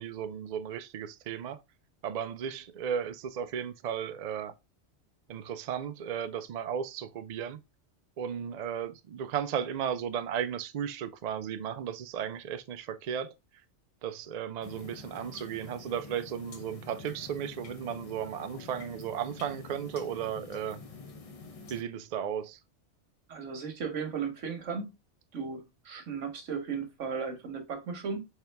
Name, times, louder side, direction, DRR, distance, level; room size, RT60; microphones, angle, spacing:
voice 1, 0.0-1.6 2.0-4.5 5.3-7.6 8.2-13.3 14.0-20.8 21.7-22.6, right 8 dB, 60° right, 0.4 m, -35 dB
sound 1, 14.6-21.8, left 4 dB, 35° left, 0.7 m, -47 dB
voice 2, 23.3-24.9 25.3-28.2, right 5 dB, 85° right, 1.4 m, -36 dB
4.3 x 3.6 x 3.2 m
omnidirectional pair, 1.2 m